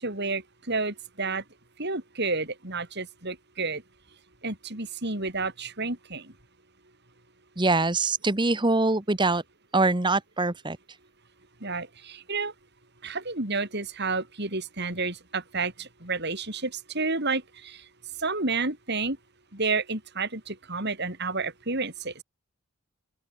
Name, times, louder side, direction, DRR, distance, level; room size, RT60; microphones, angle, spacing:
voice 1, 0.0-1.4 1.8-3.8 4.4-6.3 11.6-12.5 13.0-17.8 18.2-19.2 19.5-22.2, right 3 dB, 50° right, 5.2 m, -30 dB
voice 2, 7.6-9.4 9.7-10.8, right 2 dB, 20° right, 1.2 m, -23 dB
open air
head